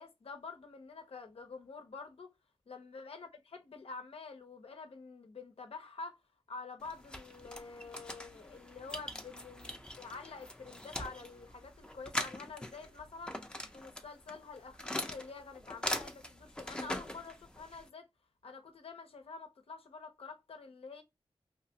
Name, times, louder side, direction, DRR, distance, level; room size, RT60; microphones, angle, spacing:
voice 1, 0.0-2.3 2.7-6.2 6.5-13.3 13.7-18.1 18.4-21.0, left 4 dB, 80° left, 0.7 m, -48 dB
sound 1, 6.8-17.9, left 1 dB, 10° left, 0.5 m, -42 dB
3.0 x 2.3 x 2.7 m
wide cardioid pair, 70°, 10 cm